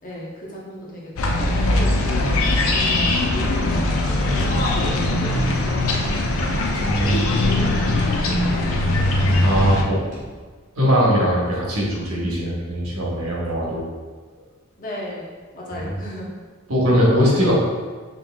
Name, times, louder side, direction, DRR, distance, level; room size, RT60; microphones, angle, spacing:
voice 1, 0.0-3.6 3.9-6.7 7.0-9.5 14.8-16.3, left 1 dB, 40° left, -4 dB, 0.9 m, -35 dB
sound 1, 1.2-9.8, left 2 dB, 75° left, 0.5 m, -20 dB
sound 2, 4.4-5.3 5.6-5.7 6.7-7.4 7.9-8.0 9.3-9.8 10.1-10.8, equal, 40° right, 1.4 m, -36 dB
voice 2, 6.8-7.3 9.4-10.0 10.8-13.8 15.7-15.9 16.7-17.6, equal, 85° right, -4 dB, 1.2 m, -20 dB
5.3 x 3.2 x 2.3 m, 1.5 s
head